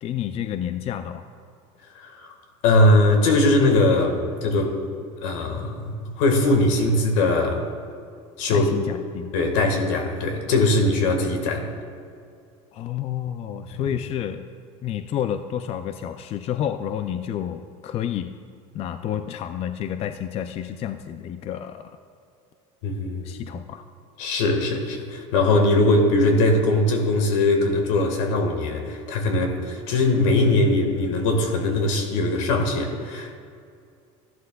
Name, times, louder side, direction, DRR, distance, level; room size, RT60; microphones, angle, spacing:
voice 1, 0.0-1.3 8.5-9.3 12.7-14.4 14.8-18.4 18.7-21.9 23.2-23.8, left 10 dB, 40° left, 9 dB, 0.4 m, -30 dB
voice 2, 1.9-2.3 2.6-4.8 5.2-7.6 8.4-8.7 9.3-11.7 13.7-13.9 22.8-23.4 24.2-33.4, left 2 dB, 80° left, 4 dB, 1.6 m, -21 dB
14.0 x 11.5 x 2.3 m, 2.3 s
supercardioid pair, 115°, 16 cm